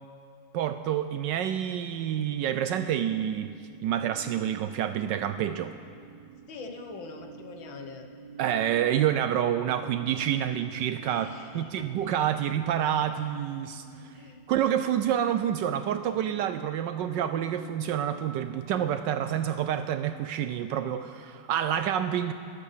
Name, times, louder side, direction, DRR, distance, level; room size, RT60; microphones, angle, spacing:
voice 1, 0.5-3.5 3.8-5.7 8.4-11.3 11.5-14.1 14.5-22.3, right 10 dB, 75° right, 10 dB, 1.1 m, -28 dB
sound 1, 2.2-19.3, right 8 dB, 45° right, 3.5 m, -50 dB
voice 2, 6.5-8.1 11.0-11.9 14.1-14.4, left 4 dB, 70° left, 4 dB, 1.9 m, -43 dB
21.0 x 8.4 x 6.7 m, 2.3 s
omnidirectional pair, 2.2 m